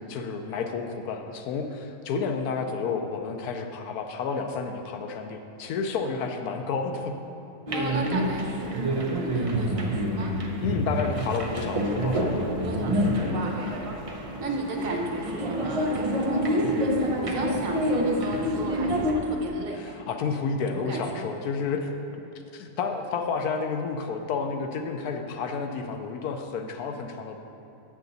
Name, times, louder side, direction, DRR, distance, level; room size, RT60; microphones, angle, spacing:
voice 1, 0.1-7.2 10.6-12.5 13.2-13.4 19.7-21.9 22.5-27.4, left 5 dB, 90° left, 5 dB, 1.1 m, -30 dB
sound 1, 7.7-19.1, equal, 40° right, 0.4 m, -27 dB
voice 2, 7.7-10.4 12.5-13.9 14.4-20.0 20.7-21.1, right 2 dB, 65° right, 1 dB, 1.3 m, -34 dB
7.5 x 6.8 x 3.9 m, 2.7 s
omnidirectional pair, 1.5 m